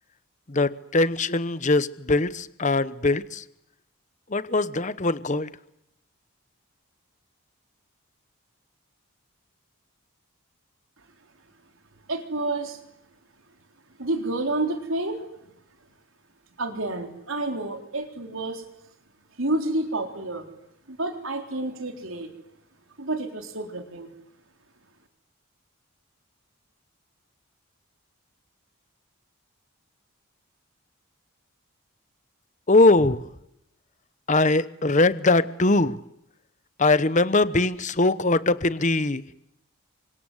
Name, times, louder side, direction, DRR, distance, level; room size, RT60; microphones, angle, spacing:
voice 1, 0.5-3.4 4.3-5.5 32.7-33.3 34.3-36.0 36.8-39.2, left 2 dB, 35° left, 15 dB, 1.0 m, -21 dB
voice 2, 12.1-12.8 14.0-15.3 16.6-18.7 19.4-20.5 20.9-22.3 23.0-24.1, right 2 dB, 65° right, 5 dB, 3.9 m, -29 dB
28.5 x 25.5 x 8.1 m, 0.81 s
head